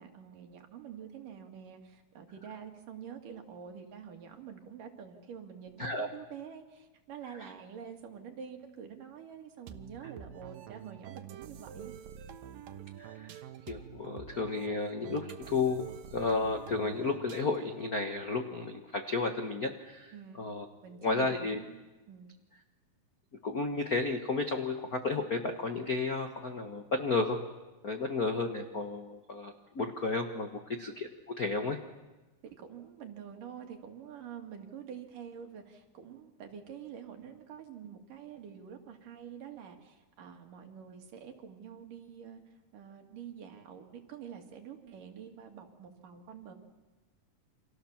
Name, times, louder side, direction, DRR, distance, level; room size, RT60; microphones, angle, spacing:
voice 1, 0.0-11.9 20.1-20.4 20.8-22.4 30.7-30.8 32.4-46.5, right 8 dB, 70° right, 4 dB, 3.9 m, -47 dB
sound 1, 9.7-17.8, right 9 dB, 85° right, 3.0 m, -47 dB
voice 2, 13.0-13.3 13.7-20.7 21.0-21.6 23.4-27.4 27.8-31.8, left 3 dB, 55° left, 5 dB, 1.0 m, -33 dB
29.5 x 26.0 x 7.3 m, 1.2 s
omnidirectional pair, 4.0 m